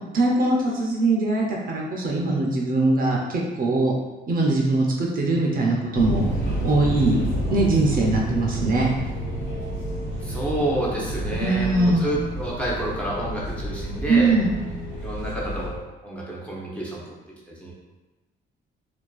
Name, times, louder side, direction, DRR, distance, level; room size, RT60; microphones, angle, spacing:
voice 1, 0.1-3.9 4.3-6.3 6.6-7.2 7.5-8.9 11.4-12.0 14.1-14.6, right 2 dB, 45° right, -2 dB, 0.5 m, -21 dB
sound 1, 5.9-15.7, right 1 dB, 80° left, 1.2 m, -29 dB
voice 2, 10.2-14.3 15.0-17.0 17.5-17.7, right 1 dB, 5° left, -5 dB, 0.6 m, -29 dB
2.4 x 2.3 x 2.3 m, 1.1 s
cardioid pair, 90°, 20 cm